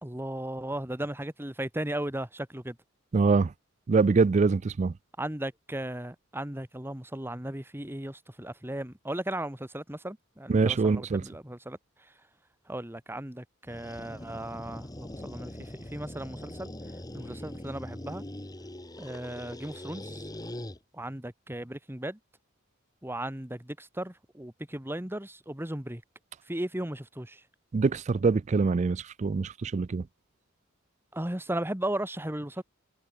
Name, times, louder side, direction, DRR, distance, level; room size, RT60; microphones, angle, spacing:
voice 1, 0.0-2.8 5.2-11.8 12.7-16.7 17.1-18.2 19.0-20.3 20.9-22.2 23.0-26.0 26.5-27.4 31.1-32.6, right 1 dB, 10° right, 1.7 m, -36 dB
voice 2, 3.1-3.5 3.9-4.9 10.5-11.2 27.7-30.0, right 4 dB, 35° right, 0.3 m, -24 dB
sound 1, 13.7-20.8, left 1 dB, 20° left, 1.7 m, -42 dB
head